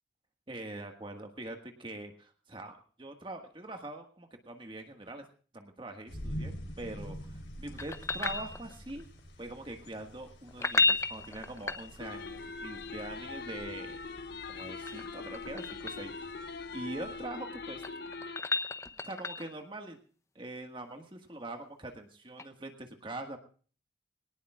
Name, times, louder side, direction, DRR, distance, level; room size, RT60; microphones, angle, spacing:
voice 1, 0.5-5.2 5.5-9.0 9.4-14.0 14.5-16.3 16.7-17.8 19.0-20.0 20.3-23.4, right 2 dB, 30° right, 4 dB, 1.7 m, -43 dB
sound 1, 6.1-17.3, equal, 85° left, 3.8 m, -47 dB
sound 2, 7.8-9.0 10.5-12.3 14.5-16.1 17.5-19.6 22.4-22.5, left 3 dB, 15° left, 0.6 m, -33 dB
sound 3, 12.0-18.4, left 4 dB, 60° left, 0.8 m, -42 dB
22.5 x 18.5 x 2.4 m, 0.41 s
head